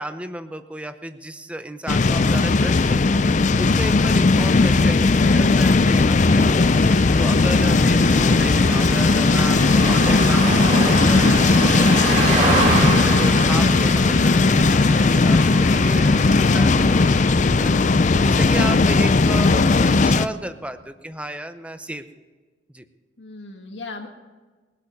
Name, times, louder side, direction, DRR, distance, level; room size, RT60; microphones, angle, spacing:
voice 1, 0.0-3.2 3.6-6.7 7.2-17.8 18.2-22.0 22.7-22.9, right 1 dB, 5° right, 10 dB, 0.7 m, -33 dB
sound 1, 1.9-20.3, left 3 dB, 40° left, 0.5 m, -17 dB
sound 2, 4.4-17.4, right 2 dB, 35° right, 2.6 m, -27 dB
voice 2, 23.2-24.1, left 3 dB, 80° left, 2 dB, 1.6 m, -38 dB
21.0 x 8.4 x 6.7 m, 1.3 s
head